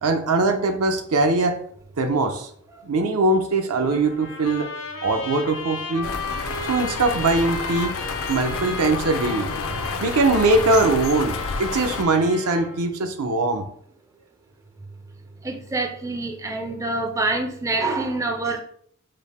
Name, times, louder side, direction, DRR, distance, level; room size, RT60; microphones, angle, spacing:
voice 1, 0.0-1.6 2.0-2.5 2.8-4.7 5.0-6.1 6.7-8.0 8.3-9.5 10.0-13.7, right 2 dB, 70° right, 6 dB, 0.6 m, -21 dB
Trumpet, 3.9-12.8, left 3 dB, 80° left, 1.3 m, -34 dB
sound 1, 6.0-12.0, left 5 dB, 65° left, 0.4 m, -30 dB
voice 2, 15.4-18.6, right 2 dB, 15° right, 3 dB, 0.4 m, -26 dB
5.3 x 2.1 x 4.1 m, 0.64 s
head